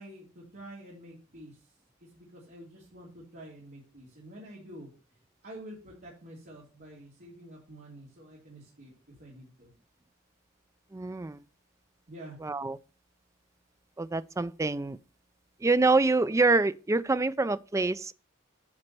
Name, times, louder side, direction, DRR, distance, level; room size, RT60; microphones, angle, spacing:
voice 1, 0.0-1.7 2.0-4.9 5.4-8.9 9.2-9.7 12.1-12.4, right 1 dB, 45° right, 3.2 m, -48 dB
voice 2, 10.9-11.4 12.4-12.8 14.0-15.0 15.6-18.1, right 3 dB, 15° right, 0.4 m, -26 dB
9.8 x 4.2 x 6.7 m
head